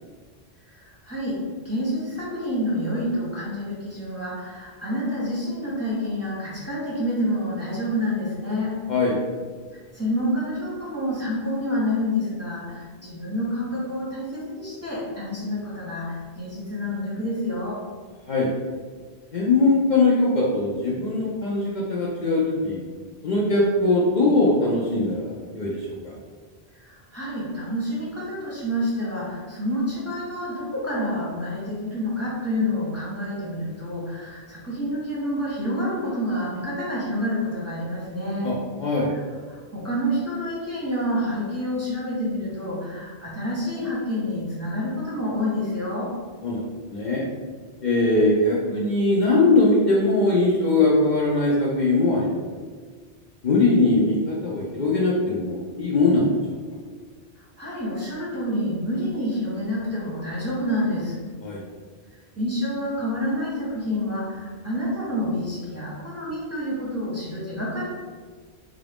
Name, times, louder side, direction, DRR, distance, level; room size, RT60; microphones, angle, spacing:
voice 1, 0.7-8.8 9.7-17.8 26.7-38.5 39.1-39.2 39.5-46.1 57.6-61.2 62.3-67.9, equal, 15° right, -7 dB, 0.8 m, -28 dB
voice 2, 19.3-22.8 23.2-26.1 38.4-38.5 38.8-39.1 46.4-46.6 46.9-47.2 47.8-52.4 53.4-56.6 61.4-61.6, left 2 dB, 55° left, -5 dB, 0.6 m, -21 dB
3.7 x 2.5 x 3.4 m, 1.5 s
omnidirectional pair, 1.1 m